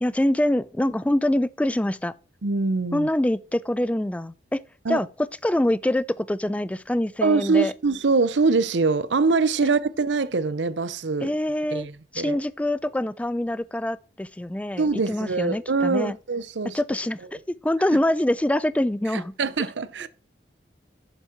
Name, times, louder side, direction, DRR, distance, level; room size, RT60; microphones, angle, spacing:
voice 1, 0.0-2.1 2.9-4.6 4.9-7.7 11.2-11.9 12.1-16.2 16.7-17.2 17.5-19.3, left 1 dB, 5° left, 0.3 m, -25 dB
voice 2, 2.4-3.1 4.8-5.0 7.2-11.3 11.7-12.4 14.8-16.8 19.1-20.1, right 4 dB, 85° right, 0.7 m, -23 dB
7.5 x 7.0 x 4.4 m
head